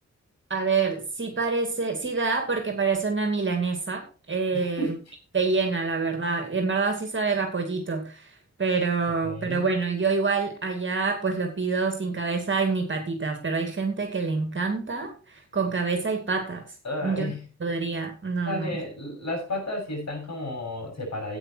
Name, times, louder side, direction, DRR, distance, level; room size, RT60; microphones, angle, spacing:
voice 1, 0.5-4.9 5.3-8.3 8.6-15.1 15.5-16.6 17.0-17.3 17.6-18.7, right 4 dB, 40° right, 4 dB, 2.4 m, -26 dB
voice 2, 4.5-5.0 9.2-9.7 16.8-17.4 18.4-21.4, left 1 dB, 65° left, 1 dB, 7.1 m, -32 dB
12.0 x 8.8 x 4.5 m, 0.36 s
wide cardioid pair, 125°, 29 cm